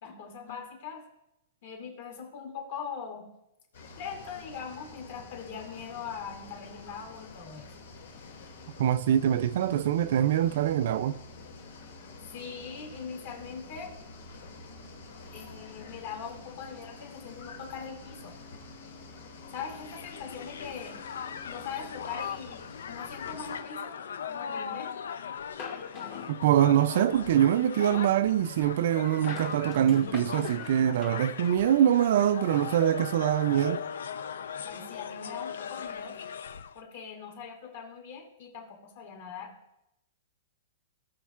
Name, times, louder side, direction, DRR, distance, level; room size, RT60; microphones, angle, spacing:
voice 1, 0.0-1.0 1.6-3.3 4.0-7.7 12.3-13.9 15.3-18.3 19.5-21.0 21.5-24.0 24.3-24.9 34.6-36.2 36.7-39.5, left 6 dB, 45° left, 2.5 m, -41 dB
sound 1, 3.7-23.6, left 3 dB, 70° left, 2.4 m, -48 dB
voice 2, 8.8-11.2 26.3-33.8, right 10 dB, 50° right, 0.3 m, -24 dB
Crowd, 19.4-36.8, left 7 dB, 90° left, 0.4 m, -39 dB
sound 2, 25.6-27.1 28.9-31.8, left 6 dB, 25° left, 1.1 m, -44 dB
18.0 x 6.2 x 2.4 m
hypercardioid pair, 175°, 0 cm